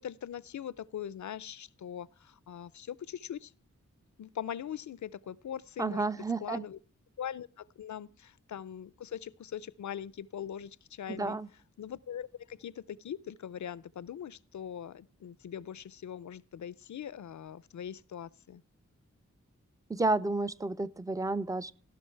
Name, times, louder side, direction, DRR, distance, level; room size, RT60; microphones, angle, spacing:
voice 1, 0.0-3.5 4.2-6.8 7.2-11.4 11.8-18.6, left 9 dB, 70° left, 0.5 m, -41 dB
voice 2, 5.8-6.6 11.1-11.5 19.9-21.7, right 2 dB, 10° right, 0.4 m, -31 dB
16.5 x 6.0 x 4.5 m
wide cardioid pair, 105°, 30 cm